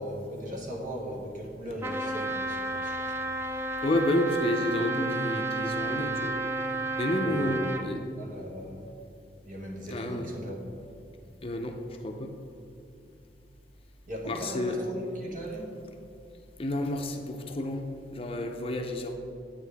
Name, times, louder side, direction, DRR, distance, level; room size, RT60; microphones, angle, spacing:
voice 1, 0.0-3.1 7.2-8.9 9.4-10.7 14.1-15.7, equal, 50° right, -1 dB, 1.4 m, -38 dB
Trumpet, 1.8-7.9, right 2 dB, 15° right, 0.5 m, -32 dB
voice 2, 3.8-6.4 7.0-8.0 9.9-10.3 11.4-11.8 12.0-12.3 14.3-14.8 16.6-19.2, left 1 dB, 30° left, 4 dB, 0.6 m, -30 dB
9.1 x 8.8 x 3.5 m, 2.6 s
head